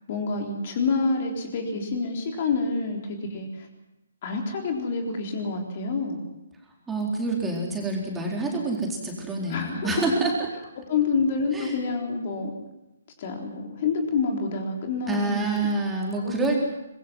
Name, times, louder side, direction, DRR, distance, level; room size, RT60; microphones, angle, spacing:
voice 1, 0.1-3.7 4.2-6.2 9.5-9.9 10.9-12.5 13.2-15.7 16.2-16.5, left 4 dB, 35° left, 2 dB, 3.9 m, -27 dB
voice 2, 6.9-10.3 11.5-11.7 15.1-16.6, right 3 dB, 10° right, -2 dB, 4.1 m, -27 dB
25.0 x 22.0 x 6.2 m, 0.94 s
figure-of-eight pair, 135°, 0 cm